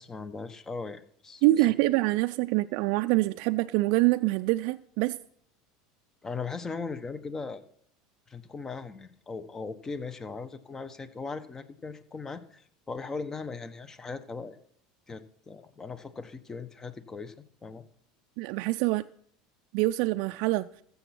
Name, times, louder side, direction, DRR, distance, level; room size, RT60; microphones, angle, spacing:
voice 1, 0.0-1.7 6.2-7.6 8.3-14.6 15.1-17.3 17.6-17.8, left 4 dB, 20° left, 1.2 m, -39 dB
voice 2, 1.4-5.2 18.4-19.0 19.7-20.7, right 19 dB, 65° right, 0.4 m, -25 dB
14.5 x 7.2 x 5.9 m
hypercardioid pair, 95°, 2 cm